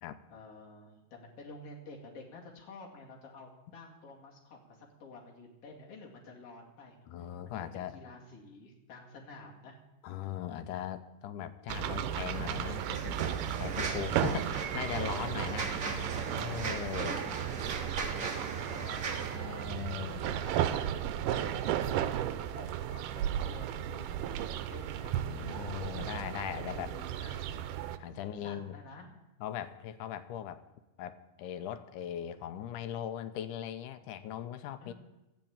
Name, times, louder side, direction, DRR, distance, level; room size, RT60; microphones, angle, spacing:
voice 1, 0.3-9.8 14.4-14.7 15.3-15.7 16.9-19.2 19.7-20.7 21.3-25.2 26.5-27.6 28.1-29.1 34.8-34.9, left 3 dB, 50° left, -2 dB, 3.2 m, -50 dB
voice 2, 7.1-7.9 10.0-13.2 13.6-15.7 16.4-17.2 19.3-20.3 25.0-26.9 28.0-28.7 29.4-30.6 31.0-34.9, left 10 dB, 80° left, 11 dB, 2.3 m, -39 dB
sound 1, 11.7-28.0, right 11 dB, 85° right, 2.3 m, -35 dB
sound 2, 12.3-19.4, right 3 dB, 50° right, 0.9 m, -39 dB
13.5 x 8.3 x 8.8 m, 0.98 s
omnidirectional pair, 3.7 m